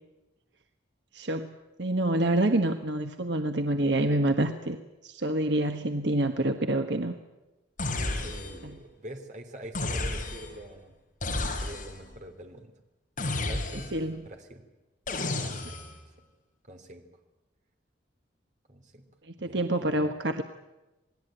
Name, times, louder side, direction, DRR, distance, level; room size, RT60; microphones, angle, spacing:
voice 1, 1.1-4.8 5.0-7.1 8.1-8.3 8.6-8.7 13.9-14.2 19.4-20.4, right 1 dB, 65° right, 6 dB, 1.4 m, -27 dB
sound 1, 7.8-8.7 9.7-10.6 11.2-12.1 13.2-14.1 15.1-16.0, left 2 dB, 45° left, 4.8 m, -32 dB
voice 2, 8.2-10.9 11.5-12.7 13.5-14.6 15.3-15.8 16.7-17.0 18.7-19.0 19.4-20.1, right 1 dB, 40° right, 5 dB, 3.5 m, -45 dB
27.5 x 19.5 x 9.1 m, 1.1 s
head